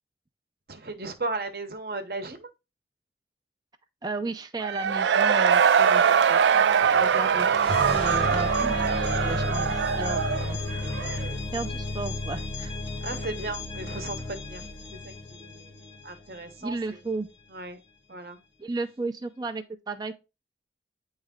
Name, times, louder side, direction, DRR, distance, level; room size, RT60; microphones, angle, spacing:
voice 1, 0.7-2.5 13.0-17.0 17.5-17.8 18.1-18.4, right 3 dB, 60° right, 0.9 m, -36 dB
voice 2, 4.0-10.6 11.5-12.7 16.6-17.3 18.6-20.2, right 3 dB, 25° right, 0.4 m, -34 dB
Cheering / Crowd, 4.6-11.3, right 7 dB, 90° right, 0.4 m, -22 dB
sound 1, 5.5-16.3, left 2 dB, 35° left, 0.8 m, -33 dB
9.1 x 3.2 x 3.6 m
head